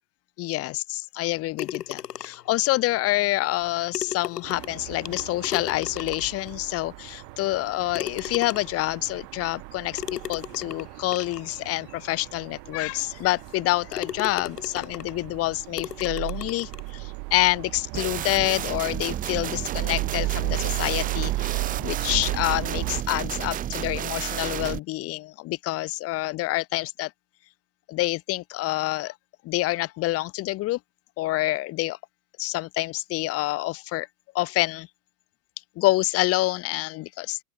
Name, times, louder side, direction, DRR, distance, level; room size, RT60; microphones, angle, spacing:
voice 1, 0.4-0.8 1.1-27.1 27.9-29.1 29.4-30.8 31.2-32.0 32.4-34.1 34.3-34.9 35.8-37.4, left 18 dB, 30° left, 1.0 m, -27 dB
sound 1, 1.6-2.5 3.6-3.7 3.9-6.5 7.1-7.2 7.9-8.9 10.0-11.5 12.2-12.3 12.8-12.9 13.4-13.6 13.9-15.2 15.8-16.9, left 10 dB, 90° left, 2.2 m, -36 dB
sound 2, 4.4-23.0, right 33 dB, 45° right, 2.7 m, -36 dB
sound 3, 17.9-24.8, right 11 dB, 20° right, 0.7 m, -31 dB
open air
hypercardioid pair, 125°, 46 cm